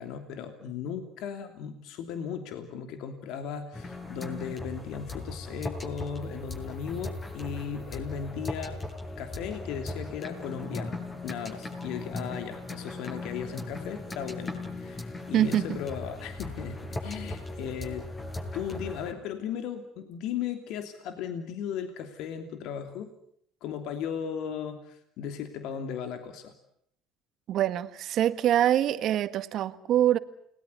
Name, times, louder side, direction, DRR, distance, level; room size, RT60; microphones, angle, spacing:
voice 1, 0.0-8.8 9.2-11.0 11.2-18.1 18.5-23.1 23.6-26.5, left 7 dB, 65° left, 7 dB, 2.9 m, -36 dB
sound 1, 3.7-19.1, left 2 dB, 25° left, 7.9 m, -38 dB
voice 2, 15.3-15.7 27.5-30.2, right 11 dB, 55° right, 13 dB, 1.7 m, -24 dB
29.5 x 20.0 x 9.7 m, 0.72 s
hypercardioid pair, 70°, 0 cm